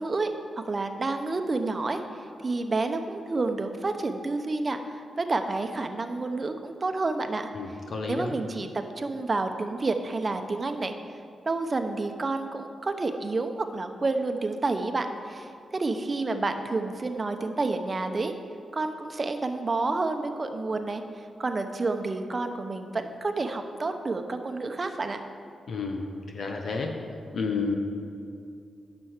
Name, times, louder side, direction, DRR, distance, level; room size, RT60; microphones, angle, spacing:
voice 1, 0.0-2.0 2.4-7.5 8.1-10.9 11.5-18.3 18.7-21.0 21.4-25.2, right 3 dB, 40° right, 6 dB, 0.9 m, -29 dB
voice 2, 7.5-8.4 25.7-26.0 26.3-26.9 27.3-27.8, left 4 dB, 65° left, 3 dB, 1.0 m, -30 dB
10.0 x 6.2 x 6.6 m, 2.5 s
cardioid pair, 65°, 0 cm